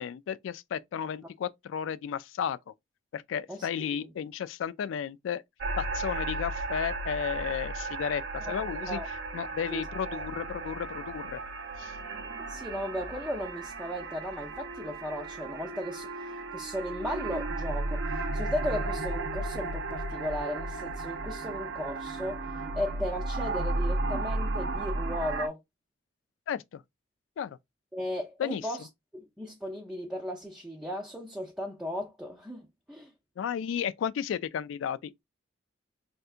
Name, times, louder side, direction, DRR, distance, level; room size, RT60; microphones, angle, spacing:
voice 1, 0.0-2.6 3.1-5.4 5.8-9.0 9.3-11.4 11.8-11.9 26.5-26.8 27.4-27.6 28.4-28.6 33.4-35.2, left 8 dB, 85° left, 0.3 m, -33 dB
voice 2, 3.5-4.1 8.5-9.1 9.7-9.9 12.5-22.5 22.7-25.6 27.9-28.9 29.1-33.1, left 1 dB, 5° right, 0.4 m, -36 dB
sound 1, 5.6-25.5, right 2 dB, 65° right, 0.4 m, -34 dB
3.4 x 2.7 x 2.4 m
head